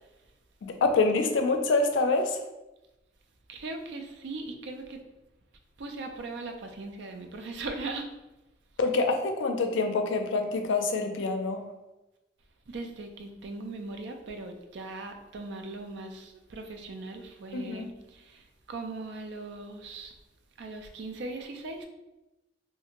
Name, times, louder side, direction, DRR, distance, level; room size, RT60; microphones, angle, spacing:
voice 1, 0.6-2.4 8.8-11.6 17.5-17.9, left 3 dB, 80° left, 5 dB, 0.4 m, -26 dB
voice 2, 3.5-5.0 5.8-8.1 12.7-20.1 20.6-21.9, right 3 dB, 65° right, 4 dB, 0.4 m, -39 dB
2.5 x 2.5 x 2.9 m, 0.99 s
head